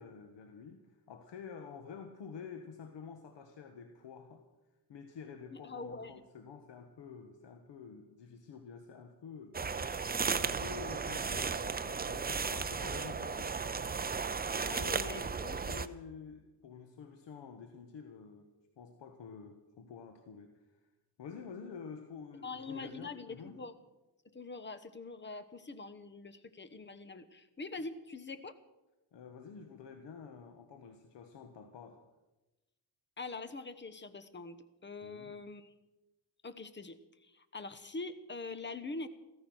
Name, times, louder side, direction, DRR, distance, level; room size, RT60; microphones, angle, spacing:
voice 1, 0.0-4.4 4.9-9.7 10.3-13.5 14.5-18.5 18.8-20.8 21.2-23.6 29.1-32.0 35.0-35.3, left 6 dB, 80° left, 6 dB, 1.5 m, -49 dB
voice 2, 5.5-6.1 14.6-15.6 22.4-23.7 24.2-28.6 33.2-35.7 36.4-39.1, left 3 dB, 25° left, 11 dB, 1.2 m, -44 dB
sound 1, 9.5-15.9, right 5 dB, 20° right, 0.7 m, -35 dB
15.5 x 14.0 x 6.3 m, 1.0 s
cardioid pair, 105°, 43 cm